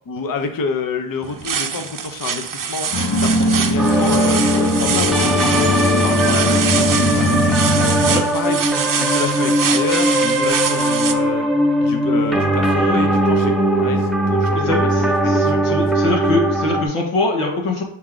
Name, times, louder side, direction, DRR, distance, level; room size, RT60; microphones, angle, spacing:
voice 1, 0.1-5.2 5.9-8.0 8.3-11.5 11.8-16.2, left 4 dB, 45° left, 6 dB, 0.7 m, -28 dB
sound 1, 1.2-11.1, right 7 dB, 45° right, 0.6 m, -24 dB
sound 2, 2.9-8.2, left 1 dB, 60° left, 1.1 m, -19 dB
sound 3, 3.8-16.8, right 1 dB, ahead, 0.7 m, -19 dB
voice 2, 14.5-17.8, left 2 dB, 90° left, 0 dB, 1.7 m, -23 dB
6.2 x 4.4 x 3.7 m, 0.67 s
cardioid pair, 90°, 49 cm